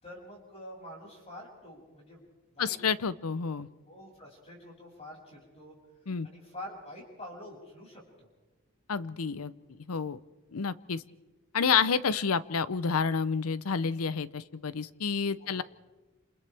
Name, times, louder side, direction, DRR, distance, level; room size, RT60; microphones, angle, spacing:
voice 1, 0.0-2.2 2.5-2.8 3.9-5.7 6.2-8.3 15.4-15.6, left 1 dB, 30° left, -2 dB, 6.7 m, -46 dB
voice 2, 2.6-3.7 6.1-6.3 8.9-10.2 10.5-11.0 11.5-15.6, left 6 dB, 75° left, 16 dB, 0.7 m, -29 dB
29.5 x 28.0 x 3.4 m, 1.2 s
head